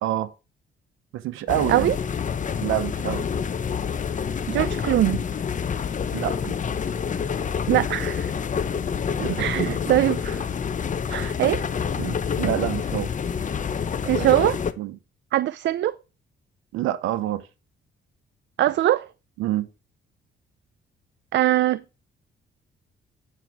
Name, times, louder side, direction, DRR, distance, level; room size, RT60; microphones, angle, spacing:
voice 1, 0.0-0.3 1.1-1.9 2.6-3.3 6.1-6.3 9.2-10.0 12.0-13.1 14.0-14.3 14.8-15.0 16.7-17.5 19.4-19.7, right 13 dB, 90° right, 0.9 m, -27 dB
sound 1, 1.5-14.7, left 7 dB, 40° left, 0.9 m, -27 dB
voice 2, 4.5-5.2 7.7-8.3 9.4-10.5 11.1-11.6 14.1-14.6 15.3-16.0 18.6-19.1 21.3-22.0, right 14 dB, 65° right, 0.5 m, -22 dB
8.9 x 4.6 x 6.0 m
cardioid pair, 90°, 20 cm